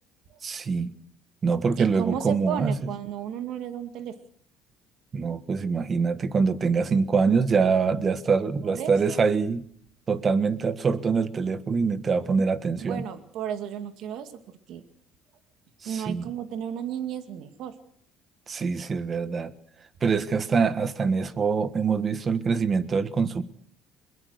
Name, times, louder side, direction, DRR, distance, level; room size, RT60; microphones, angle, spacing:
voice 1, 0.4-0.9 1.4-2.9 5.1-9.6 10.1-13.0 15.8-16.3 18.5-19.5 20.0-23.4, right 5 dB, 30° right, 13 dB, 1.4 m, -24 dB
voice 2, 1.8-4.1 8.6-9.3 12.8-14.3 14.7-14.8 15.9-17.7, right 9 dB, 65° right, 8 dB, 2.2 m, -33 dB
22.0 x 22.0 x 6.6 m, 0.63 s
cardioid pair, 125°, 0 cm